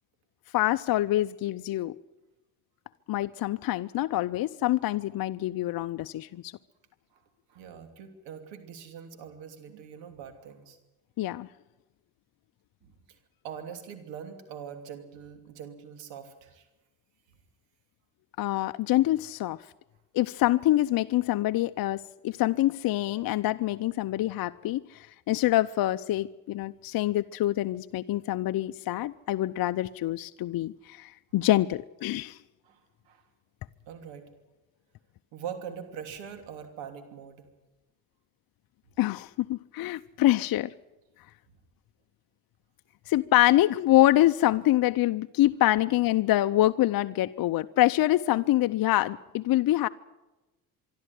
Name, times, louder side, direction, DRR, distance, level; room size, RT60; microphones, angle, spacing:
voice 1, 0.5-1.9 3.1-6.5 11.2-11.5 18.4-19.6 20.1-32.4 39.0-40.7 43.1-49.9, left 15 dB, 55° left, 0.7 m, -25 dB
voice 2, 7.5-10.8 12.8-13.2 13.4-16.7 32.6-33.2 33.9-34.3 35.3-37.4 48.2-48.3, right 8 dB, 85° right, 3.0 m, -43 dB
24.5 x 12.5 x 10.0 m
supercardioid pair, 75°, 43 cm